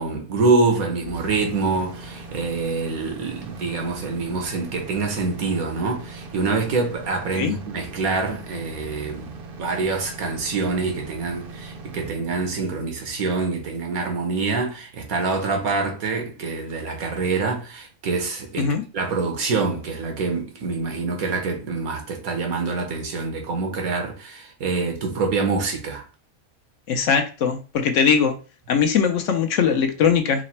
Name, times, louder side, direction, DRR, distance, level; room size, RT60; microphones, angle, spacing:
voice 1, 0.0-9.3 9.6-26.0, right 4 dB, 80° right, 1.4 m, -25 dB
sound 1, 1.0-14.9, right 3 dB, 50° right, 0.7 m, -40 dB
voice 2, 26.9-28.4 28.7-30.5, left 6 dB, 65° left, 0.9 m, -20 dB
4.9 x 2.1 x 4.2 m
omnidirectional pair, 1.5 m